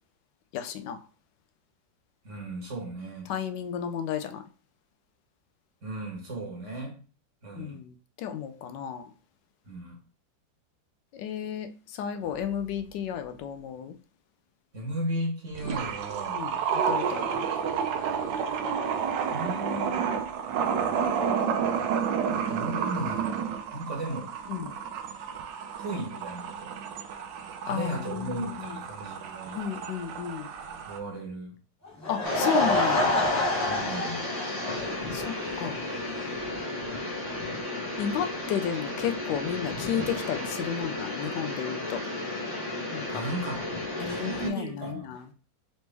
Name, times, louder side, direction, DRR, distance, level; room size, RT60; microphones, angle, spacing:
voice 1, 0.5-1.0 3.3-4.4 7.5-9.1 11.1-13.9 16.3-16.6 16.9-17.5 24.5-24.8 27.7-28.2 29.5-30.5 32.1-33.1 35.1-35.9 38.0-42.0 42.9-43.1 44.0-45.2, left 8 dB, 75° left, 1.2 m, -32 dB
voice 2, 2.2-3.3 5.8-7.0 7.4-7.8 9.6-10.0 14.7-16.5 19.3-20.1 22.3-24.3 25.8-26.8 27.6-29.6 30.8-31.5 33.6-34.2 43.1-43.6 44.0-45.3, right 1 dB, 45° right, 1.5 m, -36 dB
sound 1, 12.6-12.7 15.5-31.0, right 7 dB, 80° right, 1.3 m, -30 dB
Laughter / Crowd, 31.8-35.3 35.6-35.7 36.3-36.4 36.5-36.6, left 1 dB, 15° left, 0.6 m, -27 dB
sound 2, 32.2-44.5, left 2 dB, 40° left, 1.8 m, -34 dB
4.0 x 3.2 x 3.3 m
omnidirectional pair, 2.0 m